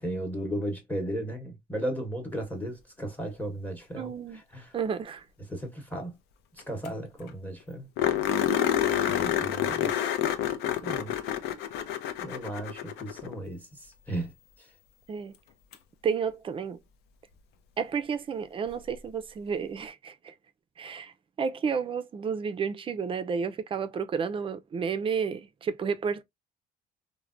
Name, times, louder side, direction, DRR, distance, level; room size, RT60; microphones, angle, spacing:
voice 1, 0.0-4.1 4.5-4.7 5.5-6.2 6.7-7.9 9.0-9.9 10.8-11.1 12.2-13.7 14.1-14.3, right 1 dB, 10° left, 0.8 m, -35 dB
voice 2, 3.9-4.4 4.7-5.2 15.1-15.4 16.0-16.8 17.8-20.3 20.8-21.1 21.4-26.2, right 6 dB, 30° right, 0.4 m, -31 dB
sound 1, 6.6-6.7 6.9-7.0 7.3-7.4 8.0-13.4 15.7-15.8 18.7-18.8, left 10 dB, 80° left, 0.5 m, -28 dB
3.2 x 2.1 x 2.4 m
cardioid pair, 110°, 17 cm